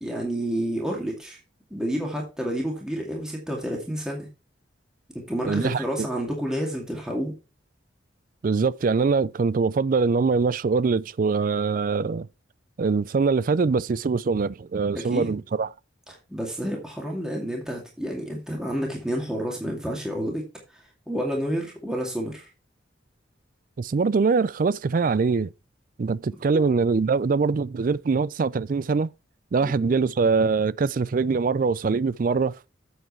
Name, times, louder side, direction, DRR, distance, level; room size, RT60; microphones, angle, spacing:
voice 1, 0.0-1.4 1.7-4.3 5.1-7.3 14.9-15.4 16.1-20.4 20.7-22.5 26.5-26.8 29.6-29.9, equal, 5° right, 2.3 m, -30 dB
voice 2, 5.4-6.1 8.4-12.3 12.8-15.7 23.8-25.5 26.0-29.1 29.5-32.6, right 4 dB, 45° right, 0.4 m, -23 dB
8.2 x 7.7 x 4.4 m
head